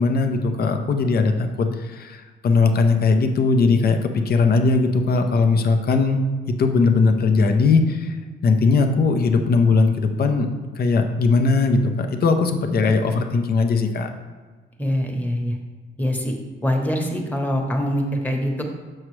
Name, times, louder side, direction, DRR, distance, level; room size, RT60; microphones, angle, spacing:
voice 1, 0.0-6.2 6.6-8.1 8.4-10.5 10.8-14.1, left 4 dB, 50° left, 6 dB, 0.7 m, -19 dB
voice 2, 14.8-15.6 16.0-16.3 16.6-18.6, equal, 10° left, 1 dB, 1.1 m, -24 dB
6.4 x 6.1 x 3.2 m, 1.4 s
cardioid pair, 90°, 20 cm